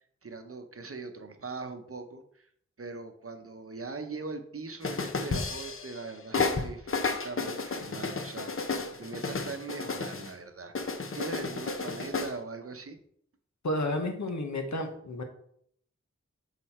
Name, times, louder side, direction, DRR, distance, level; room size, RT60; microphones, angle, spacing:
voice 1, 0.2-2.5 2.8-10.9 11.1-13.0, right 3 dB, 50° right, 7 dB, 0.9 m, -41 dB
sound 1, 4.8-6.0 6.3-10.3 10.7-12.3, left 4 dB, 45° left, 0.7 m, -32 dB
voice 2, 13.6-15.2, left 1 dB, 70° left, 5 dB, 1.1 m, -31 dB
6.6 x 4.1 x 4.3 m, 0.67 s
wide cardioid pair, 60°, 29 cm